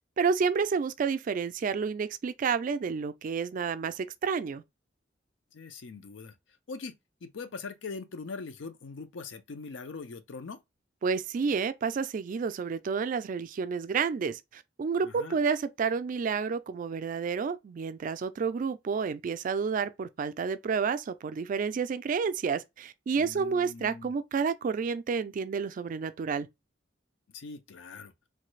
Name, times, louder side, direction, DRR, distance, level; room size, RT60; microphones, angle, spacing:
voice 1, 0.2-4.6 11.0-26.5, right 5 dB, 45° right, 0.3 m, -30 dB
voice 2, 5.5-6.3 6.7-6.9 7.2-10.6 15.0-15.4 23.1-24.1 27.3-28.1, left 4 dB, 85° left, 0.5 m, -42 dB
3.2 x 2.2 x 3.1 m
head